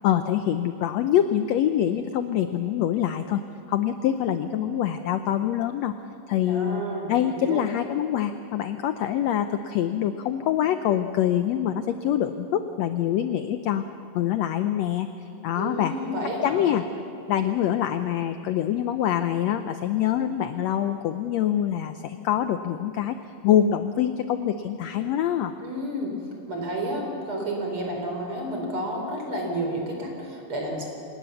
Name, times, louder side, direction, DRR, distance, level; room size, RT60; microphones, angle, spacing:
voice 1, 0.0-3.4 3.7-5.9 6.3-6.8 7.1-13.8 14.1-15.1 15.4-15.9 16.4-16.8 17.3-23.2 23.4-25.5, left 10 dB, 80° left, 9 dB, 1.5 m, -25 dB
voice 2, 6.5-7.6 15.5-16.7 25.6-26.1 26.5-30.8, right 1 dB, 40° right, 1 dB, 4.9 m, -31 dB
26.5 x 19.5 x 7.0 m, 2.8 s
omnidirectional pair, 3.8 m